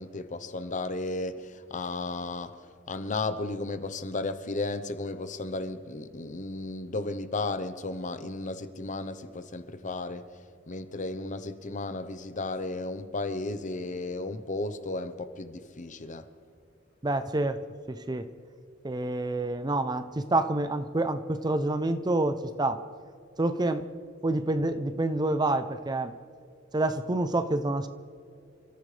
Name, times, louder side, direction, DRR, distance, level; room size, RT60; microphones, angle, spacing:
voice 1, 0.0-10.3 10.7-16.3, left 2 dB, 40° left, 0.9 m, -34 dB
voice 2, 17.0-17.6 17.9-18.3 18.8-22.8 23.4-23.9 24.2-26.1 26.7-27.9, right 2 dB, 20° right, 0.6 m, -27 dB
28.5 x 14.5 x 3.3 m
head